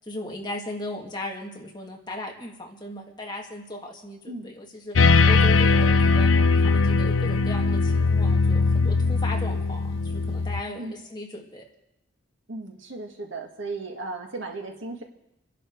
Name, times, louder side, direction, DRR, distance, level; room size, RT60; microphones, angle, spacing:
voice 1, 0.0-5.0 5.2-6.3 6.6-11.7, left 1 dB, 20° left, -1 dB, 2.0 m, -37 dB
sound 1, 5.0-10.6, left 4 dB, 70° left, 0.6 m, -20 dB
voice 2, 10.7-11.0 12.5-15.0, right 3 dB, 65° right, 3 dB, 2.0 m, -36 dB
27.0 x 11.0 x 4.7 m, 0.86 s
head